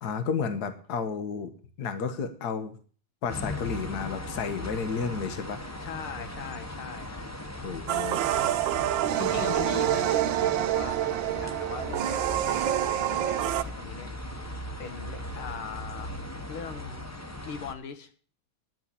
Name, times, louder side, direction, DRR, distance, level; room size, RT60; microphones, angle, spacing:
voice 1, 0.0-1.5 1.8-2.8 3.2-5.6 7.6-8.2 9.4-9.6, left 5 dB, 50° left, 10 dB, 1.8 m, -32 dB
sound 1, 3.3-17.7, left 1 dB, 15° left, 0.7 m, -38 dB
voice 2, 5.8-7.1 8.3-8.7 9.2-14.5 14.8-17.0 17.4-18.1, left 6 dB, 80° left, 10 dB, 2.3 m, -40 dB
sound 2, 7.9-13.6, right 12 dB, 70° right, 1.4 m, -27 dB
11.5 x 7.5 x 8.3 m, 0.41 s
omnidirectional pair, 2.3 m